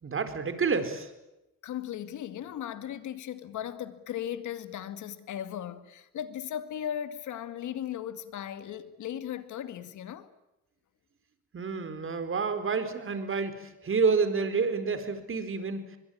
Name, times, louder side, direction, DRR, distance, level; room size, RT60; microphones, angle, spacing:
voice 1, 0.0-1.1 11.5-15.8, right 5 dB, 45° right, 4.4 m, -29 dB
voice 2, 1.6-10.3, left 10 dB, 75° left, 2.2 m, -37 dB
24.0 x 22.5 x 8.8 m
cardioid pair, 90°, 30 cm